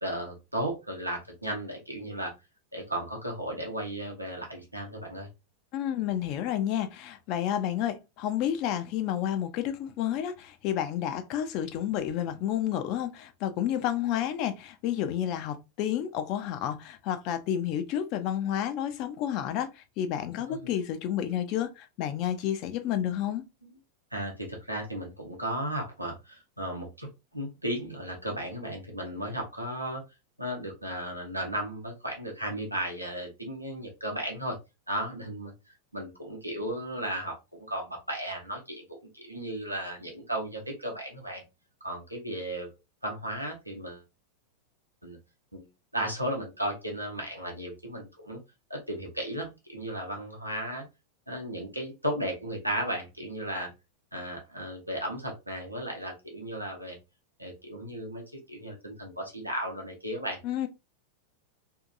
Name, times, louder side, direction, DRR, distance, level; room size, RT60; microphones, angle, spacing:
voice 1, 0.0-2.3 2.7-5.3 20.5-20.6 23.6-23.8 24.1-30.0 30.4-34.6 34.9-37.3 37.7-38.9 39.1-41.4 41.8-42.7 43.0-44.0 45.0-45.2 45.5-45.7 45.9-48.4 48.7-50.8 51.3-53.7 54.1-57.0 57.4-58.2 58.5-60.4, right 1 dB, 85° right, 0.8 m, -35 dB
voice 2, 5.7-23.4 60.4-60.7, left 10 dB, 40° left, 0.3 m, -30 dB
2.7 x 2.5 x 2.4 m
figure-of-eight pair, 90°, 0 cm